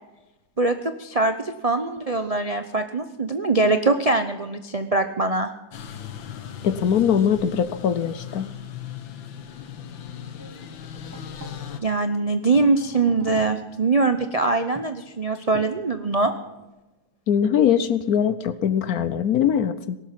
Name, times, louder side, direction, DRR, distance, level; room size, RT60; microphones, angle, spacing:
voice 1, 0.6-5.5 11.8-16.3, right 3 dB, 65° right, 7 dB, 0.3 m, -22 dB
sound 1, 5.7-11.8, left 9 dB, 85° left, 1.9 m, -38 dB
voice 2, 6.6-8.5 17.3-20.0, left 8 dB, 65° left, 14 dB, 1.0 m, -21 dB
sound 2, 10.4-16.7, right 1 dB, 10° right, 1.3 m, -44 dB
18.5 x 12.0 x 5.9 m, 1.0 s
omnidirectional pair, 2.0 m